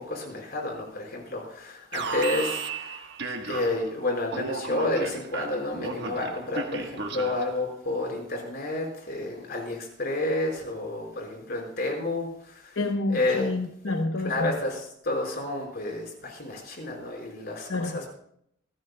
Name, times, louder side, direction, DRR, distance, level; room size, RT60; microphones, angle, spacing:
voice 1, 0.0-3.0 3.4-12.8 13.1-13.5 14.2-18.1, left 2 dB, 50° left, 1 dB, 4.9 m, -30 dB
Alarm, 1.9-3.9 4.3-7.6, right 4 dB, 60° right, 1.4 m, -34 dB
voice 2, 12.8-14.5 17.7-18.0, left 2 dB, 85° left, 4 dB, 1.0 m, -28 dB
26.0 x 14.0 x 2.3 m, 0.71 s
head